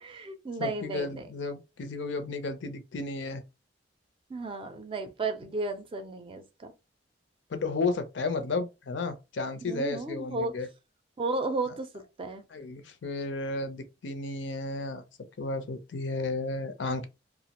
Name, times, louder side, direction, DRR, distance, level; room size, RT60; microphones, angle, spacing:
voice 1, 0.0-1.2 4.3-6.7 9.7-10.5 11.2-11.9 12.2-12.4, right 2 dB, 30° right, 0.4 m, -33 dB
voice 2, 0.6-3.4 7.5-10.7 11.7-11.8 12.5-15.0 15.4-17.1, left 3 dB, 85° left, 0.5 m, -33 dB
2.4 x 2.0 x 2.8 m
head